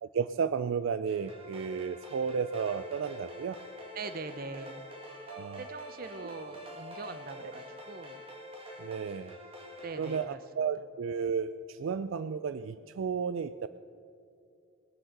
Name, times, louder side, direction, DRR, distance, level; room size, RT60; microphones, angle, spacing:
voice 1, 0.0-3.6 5.3-5.6 7.4-7.5 8.8-9.4 9.9-13.7, right 6 dB, 75° right, 13 dB, 0.3 m, -33 dB
sound 1, 1.1-10.2, left 1 dB, 25° right, 1.9 m, -46 dB
voice 2, 3.9-4.8 5.6-8.2 9.8-10.4, right 3 dB, 45° right, 11 dB, 0.7 m, -42 dB
20.5 x 7.7 x 6.6 m, 2.6 s
head